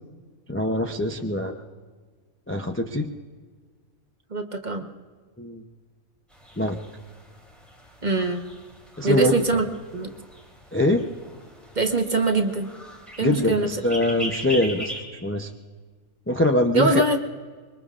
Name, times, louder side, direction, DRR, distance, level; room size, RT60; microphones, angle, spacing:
voice 1, 0.5-1.6 2.5-3.1 5.4-5.6 6.6-6.8 9.0-9.6 10.7-11.0 13.2-15.5 16.3-17.0, left 1 dB, 15° left, 3 dB, 0.4 m, -23 dB
voice 2, 4.3-4.9 8.0-8.4 9.0-9.7 9.9-10.1 11.8-12.7 13.2-13.7 16.7-17.2, right 2 dB, 35° right, 4 dB, 1.0 m, -23 dB
sound 1, 6.3-15.0, equal, ahead, 3.2 m, -40 dB
25.0 x 23.0 x 2.5 m, 1.5 s
omnidirectional pair, 1.5 m